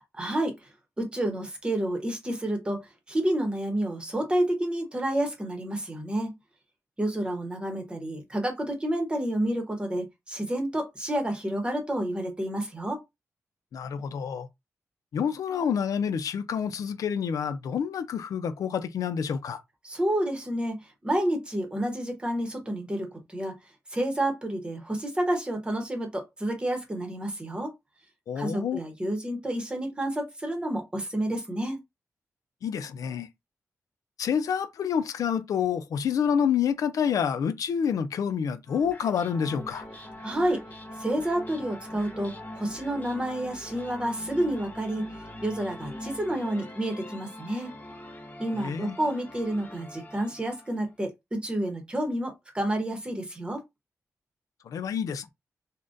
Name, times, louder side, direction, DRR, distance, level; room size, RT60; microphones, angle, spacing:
voice 1, 0.2-0.5 1.0-6.3 7.0-13.0 19.8-23.5 23.9-27.7 28.4-31.8 40.2-40.6 41.0-45.1 45.4-47.7 48.4-53.6, right 1 dB, 15° right, 0.9 m, -29 dB
voice 2, 13.7-14.5 15.1-19.6 28.3-28.8 32.6-33.3 34.2-39.9 48.6-49.0 54.7-55.3, left 7 dB, 85° left, 0.4 m, -28 dB
sound 1, 38.7-50.9, left 1 dB, 30° left, 0.7 m, -42 dB
3.8 x 2.1 x 2.5 m
wide cardioid pair, 145°, 6 cm